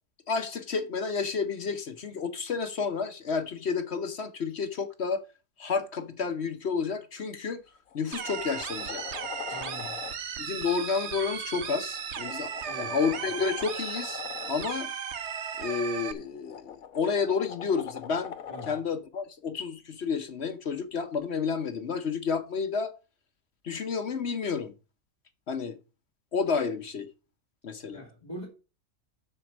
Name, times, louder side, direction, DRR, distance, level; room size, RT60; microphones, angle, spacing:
voice 1, 0.3-5.2 5.6-7.6 7.9-9.0 9.5-9.6 10.4-14.2 14.5-14.9 15.6-18.3 18.7-22.9 23.6-24.7 25.5-25.8 26.3-27.1 27.6-28.0, left 5 dB, 55° left, 1.1 m, -30 dB
sound 1, 7.3-7.4 7.9-10.2 11.8-14.6 16.0-18.9 21.1-21.2, left 8 dB, 75° left, 1.3 m, -43 dB
sound 2, 8.1-16.1, right 7 dB, 55° right, 1.1 m, -36 dB
voice 2, 9.4-10.0 12.6-13.0 18.5-18.8 27.9-28.4, equal, 30° left, 2.8 m, -43 dB
7.5 x 6.8 x 6.1 m
omnidirectional pair, 1.5 m